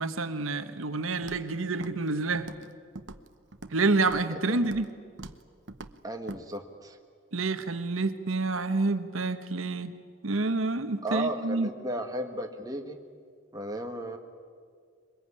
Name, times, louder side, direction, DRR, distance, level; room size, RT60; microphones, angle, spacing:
voice 1, 0.0-2.5 3.7-4.9 7.3-9.9 10.2-11.7, right 3 dB, 85° right, 10 dB, 1.2 m, -28 dB
Walk footsteps, 1.2-1.5 1.8-2.1 2.3-2.7 3.0-3.8 4.1-4.3 4.6-4.9 5.2-5.4 5.7-5.9 6.3-6.4, right 2 dB, 60° right, 0.9 m, -43 dB
voice 2, 6.0-7.0 11.0-13.0 13.5-14.2, right 1 dB, 20° right, 3 dB, 1.5 m, -34 dB
23.5 x 21.0 x 9.8 m, 2.1 s
head